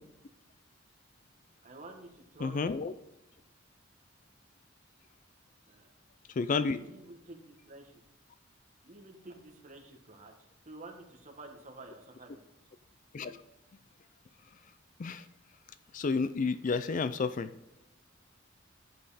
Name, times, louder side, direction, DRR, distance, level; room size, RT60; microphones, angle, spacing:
voice 1, 1.6-2.8 5.7-5.9 6.7-8.0 8.8-10.3 10.6-12.4, right 2 dB, 40° right, 1 dB, 1.6 m, -50 dB
voice 2, 2.4-2.9 6.4-6.8 13.1-13.4 15.0-15.2 15.9-17.5, left 4 dB, 40° left, 13 dB, 0.4 m, -30 dB
11.0 x 7.7 x 4.2 m, 0.92 s
head